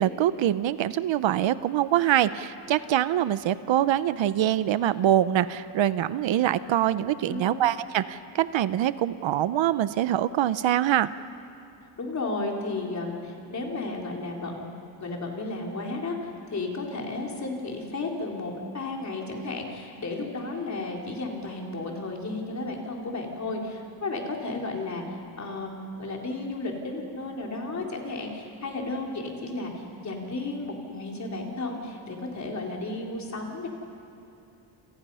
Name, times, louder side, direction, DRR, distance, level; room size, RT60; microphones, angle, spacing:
voice 1, 0.0-11.1, right 12 dB, 75° right, 14 dB, 0.8 m, -24 dB
voice 2, 7.3-7.6 12.0-14.7 15.0-25.0 25.4-33.7, left 2 dB, 35° left, 0 dB, 4.0 m, -33 dB
29.5 x 28.5 x 5.6 m, 2.8 s
cardioid pair, 145°, 46 cm